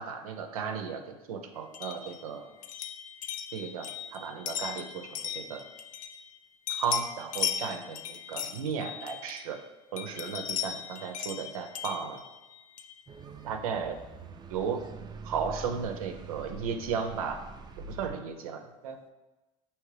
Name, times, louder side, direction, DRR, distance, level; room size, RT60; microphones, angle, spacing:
voice 1, 0.0-2.5 3.5-5.6 6.7-9.6 9.9-12.2 13.4-14.0 14.5-14.8 15.2-17.4 17.9-19.0, right 6 dB, 90° right, 5 dB, 0.5 m, -35 dB
sound 1, 1.7-6.4 6.7-9.6 10.0-13.0, left 9 dB, 50° left, 0.4 m, -37 dB
sound 2, 13.1-18.1, right 4 dB, 25° right, 0.3 m, -45 dB
4.6 x 2.9 x 3.2 m, 1.1 s
hypercardioid pair, 80°, 18 cm